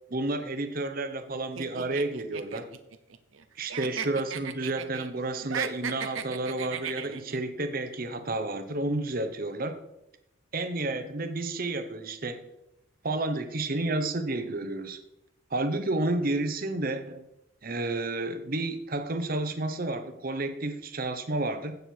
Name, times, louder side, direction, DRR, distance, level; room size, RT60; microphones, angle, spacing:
voice 1, 0.1-2.7 3.6-9.8 10.5-12.4 13.0-15.0 15.5-17.2 17.6-21.8, right 2 dB, 45° right, 9 dB, 1.0 m, -31 dB
sound 1, 1.6-3.4 3.7-5.1 5.4-7.4, right 7 dB, 75° right, 0.8 m, -36 dB
16.0 x 6.7 x 4.6 m, 0.86 s
head